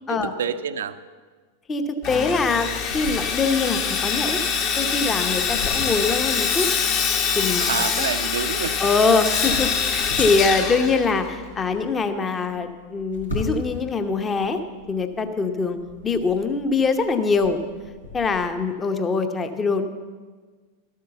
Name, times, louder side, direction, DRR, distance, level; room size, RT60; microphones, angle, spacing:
voice 1, 0.1-1.0 7.6-8.8, right 8 dB, 65° right, 12 dB, 0.6 m, -28 dB
Sawing, 2.0-11.5, left 6 dB, 40° left, 1.4 m, -24 dB
voice 2, 2.1-2.7 2.9-4.4 4.8-6.7 7.3-7.6 8.0-8.1 8.8-14.6 14.9-15.8 16.0-17.6 18.1-19.9, left 4 dB, 20° left, 8 dB, 0.9 m, -23 dB
sound 1, 2.7-18.4, left 2 dB, 85° left, 3.7 m, -38 dB
13.0 x 8.6 x 6.9 m, 1.5 s
figure-of-eight pair, 90°, 0 cm